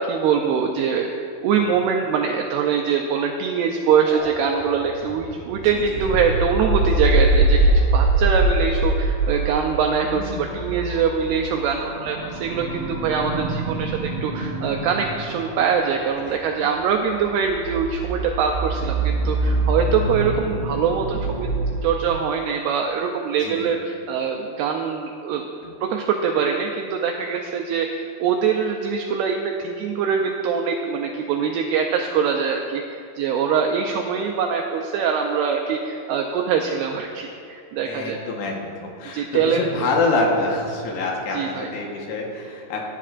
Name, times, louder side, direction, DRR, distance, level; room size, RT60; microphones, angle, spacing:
voice 1, 0.1-7.6 7.9-21.5 21.8-25.5 25.9-38.2 39.1-39.9 41.3-41.7, right 6 dB, 85° right, 2 dB, 2.3 m, -23 dB
sound 1, 4.1-21.9, right 2 dB, 70° right, 3.5 m, -24 dB
voice 2, 10.1-10.8 16.2-16.8 23.4-23.7 25.6-25.7 37.9-42.9, left 2 dB, 75° left, -1 dB, 3.3 m, -27 dB
19.0 x 10.0 x 2.5 m, 2.5 s
omnidirectional pair, 5.3 m